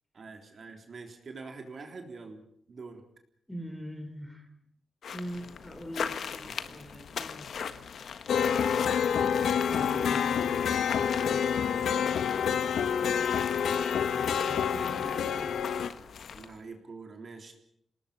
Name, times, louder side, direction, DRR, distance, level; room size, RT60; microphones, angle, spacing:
voice 1, 0.1-3.0 6.4-6.8 16.3-17.5, right 4 dB, 45° right, 4 dB, 3.6 m, -45 dB
voice 2, 3.5-4.5 5.1-7.5 9.7-10.7 11.2-12.6 13.9-15.7, equal, 5° left, 7 dB, 3.9 m, -43 dB
sound 1, 5.0-16.6, left 7 dB, 70° left, 1.5 m, -41 dB
sound 2, 8.3-15.9, left 7 dB, 85° left, 1.1 m, -27 dB
29.0 x 19.0 x 5.8 m, 0.68 s
wide cardioid pair, 125°, 0 cm